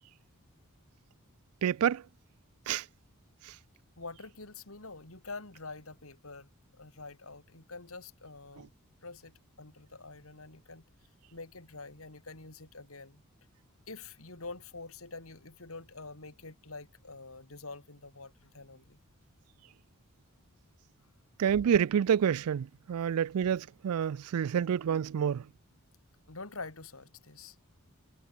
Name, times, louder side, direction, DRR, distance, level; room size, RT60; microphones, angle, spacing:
voice 1, 1.6-2.0 2.7-2.8 3.5-3.6 21.4-25.4, right 8 dB, 80° right, 0.4 m, -28 dB
voice 2, 4.0-8.7 9.0-10.8 11.3-13.2 13.9-19.0 26.3-27.6, left 3 dB, 65° left, 3.2 m, -46 dB
head